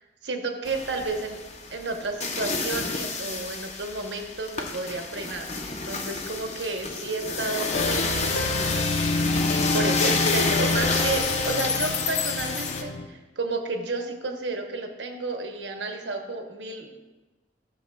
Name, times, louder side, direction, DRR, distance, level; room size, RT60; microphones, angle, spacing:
voice 1, 0.0-1.4 1.7-8.9 9.7-17.0, right 3 dB, 80° right, 4 dB, 0.9 m, -32 dB
sound 1, 0.6-12.8, left 4 dB, 40° left, 0.7 m, -30 dB
Plucked string instrument, 7.7-13.1, left 3 dB, 75° left, 0.5 m, -27 dB
12.0 x 6.6 x 2.2 m, 1.2 s
head